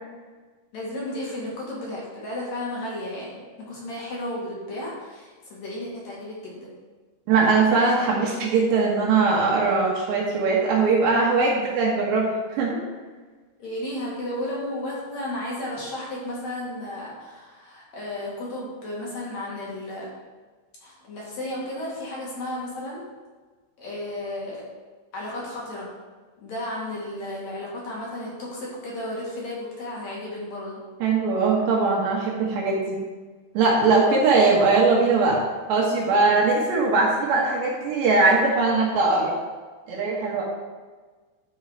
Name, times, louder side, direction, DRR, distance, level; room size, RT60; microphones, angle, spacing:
voice 1, 0.7-3.4 3.7-6.7 7.9-8.1 13.6-20.2 20.8-23.1 23.8-24.7 25.1-25.9 26.4-30.8, left 1 dB, 50° left, -5 dB, 2.2 m, -33 dB
voice 2, 7.3-12.8 31.0-33.0 33.5-35.4 35.7-39.3 39.9-40.4, right 3 dB, 70° right, -4 dB, 3.1 m, -20 dB
12.5 x 4.7 x 5.0 m, 1.4 s
omnidirectional pair, 5.9 m